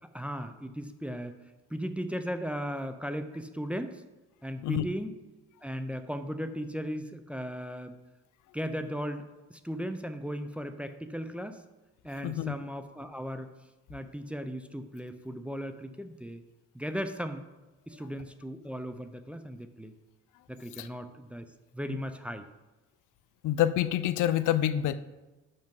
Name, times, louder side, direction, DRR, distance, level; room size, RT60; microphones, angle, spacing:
voice 1, 0.1-1.3 1.7-4.0 4.4-5.1 5.6-8.0 8.5-11.6 12.0-13.5 13.9-16.4 16.7-17.4 17.9-19.9 20.5-21.5 21.7-22.4, equal, 5° right, 8 dB, 0.5 m, -36 dB
voice 2, 12.2-12.6 20.8-20.9 21.9-22.0 23.4-24.9, left 12 dB, 80° left, 13 dB, 0.5 m, -27 dB
5.8 x 5.5 x 5.3 m, 1.1 s
cardioid pair, 90°, 30 cm